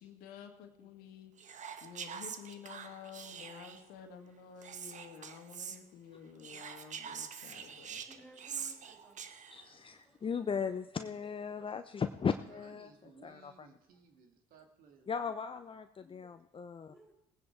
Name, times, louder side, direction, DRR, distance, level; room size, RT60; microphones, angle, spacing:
voice 1, 0.0-8.0, left 7 dB, 75° left, 5 dB, 1.8 m, -51 dB
Whispering, 1.4-3.9 4.6-5.8 6.4-9.7, right 7 dB, 50° right, 1.2 m, -45 dB
voice 2, 8.0-9.4 10.0-10.2 16.8-17.1, right 1 dB, ahead, 1 dB, 5.9 m, -59 dB
voice 3, 9.5-12.9 13.2-13.7 15.1-16.9, left 6 dB, 35° left, 9 dB, 0.8 m, -37 dB
voice 4, 12.5-15.1, right 6 dB, 65° right, 4 dB, 2.3 m, -60 dB
19.0 x 9.6 x 4.7 m, 0.86 s
hypercardioid pair, 60°, 16 cm